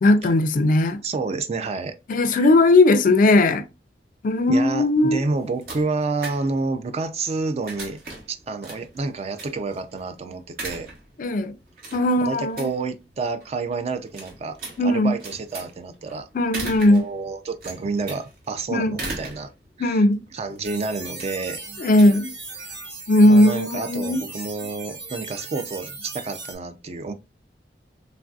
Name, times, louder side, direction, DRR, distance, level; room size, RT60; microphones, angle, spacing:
voice 1, 0.0-1.0 2.1-3.6 4.2-5.2 11.2-11.5 11.9-12.7 14.8-15.1 16.3-17.0 18.7-19.0 19.8-20.2 21.8-22.3 23.1-24.3, left 2 dB, 50° left, 0.4 m, -18 dB
voice 2, 1.0-1.9 2.3-2.5 4.5-8.0 8.5-10.9 12.2-16.3 16.9-19.5 19.8-20.0 20.3-21.6 23.3-27.1, right 3 dB, 35° right, 0.3 m, -29 dB
sound 1, 5.0-22.9, right 2 dB, 55° right, 1.0 m, -40 dB
sound 2, 20.6-26.6, right 3 dB, 85° right, 1.0 m, -37 dB
3.2 x 2.5 x 2.3 m
head